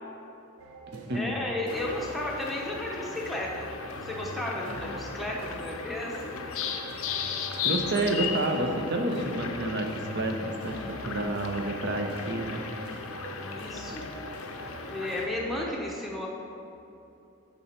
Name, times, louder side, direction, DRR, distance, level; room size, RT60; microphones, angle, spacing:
sound 1, 0.6-15.7, right 1 dB, 75° right, 1.0 m, -43 dB
voice 1, 1.1-6.3 13.4-14.1 14.9-16.3, left 1 dB, ahead, -3 dB, 0.8 m, -34 dB
sound 2, 1.7-15.3, left 6 dB, 65° left, 0.6 m, -37 dB
voice 2, 7.6-12.6, right 1 dB, 50° right, 4 dB, 0.7 m, -29 dB
7.1 x 6.7 x 4.3 m, 2.9 s
head